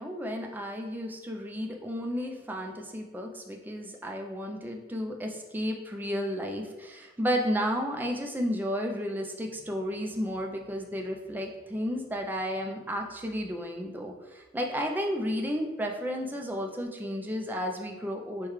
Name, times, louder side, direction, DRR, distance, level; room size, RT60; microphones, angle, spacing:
voice 1, 0.0-18.5, equal, 10° right, 1 dB, 0.4 m, -32 dB
6.4 x 2.3 x 3.1 m, 1.1 s
head